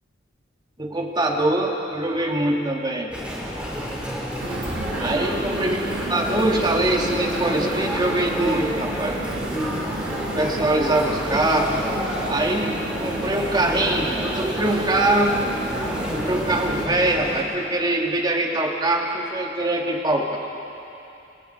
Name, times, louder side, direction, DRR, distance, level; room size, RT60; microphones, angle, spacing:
voice 1, 0.8-3.1 5.0-5.8 6.1-9.2 10.4-11.9 12.3-15.4 16.1-20.4, right 1 dB, 25° right, 0 dB, 2.5 m, -23 dB
Chatter, 3.1-17.4, equal, 5° right, 4.8 m, -29 dB
sound 1, 4.4-16.9, right 3 dB, 80° right, 1.0 m, -33 dB
29.5 x 29.0 x 4.6 m, 2.8 s
head